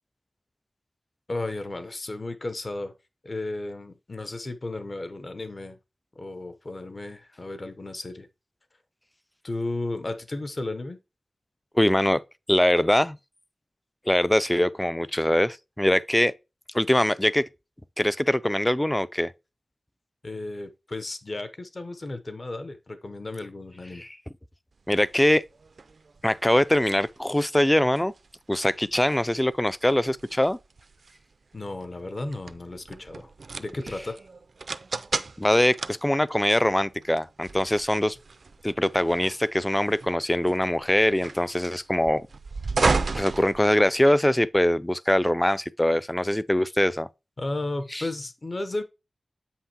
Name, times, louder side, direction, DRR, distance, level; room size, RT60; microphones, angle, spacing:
voice 1, 1.3-2.9 3.2-5.8 6.2-8.3 9.4-11.0 20.2-24.1 31.5-33.3 33.6-34.2 47.4-48.8, left 2 dB, 45° left, 0.8 m, -34 dB
voice 2, 11.8-12.2 12.5-13.2 14.1-16.3 16.7-17.5 18.0-19.3 24.0-24.1 24.9-25.4 26.2-28.1 28.5-30.6 35.4-38.2 38.6-42.3 43.2-47.1 47.9-48.0, left 1 dB, 10° left, 0.3 m, -22 dB
sound 1, 24.9-44.3, right 4 dB, 65° right, 0.4 m, -34 dB
7.9 x 5.7 x 2.8 m
wide cardioid pair, 90°, 0 cm